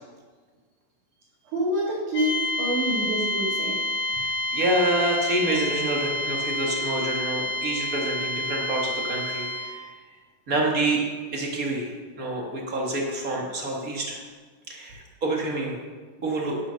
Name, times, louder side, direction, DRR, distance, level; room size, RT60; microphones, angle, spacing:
voice 1, 1.5-3.8, right 1 dB, 75° right, -6 dB, 3.5 m, -27 dB
sound 1, 2.1-9.9, left 1 dB, 80° left, 1.0 m, -29 dB
voice 2, 4.1-9.9 10.5-11.0 11.3-14.2 14.7-15.8 16.2-16.6, right 1 dB, 35° right, -1 dB, 1.6 m, -27 dB
11.5 x 7.3 x 6.3 m, 1.5 s
omnidirectional pair, 3.6 m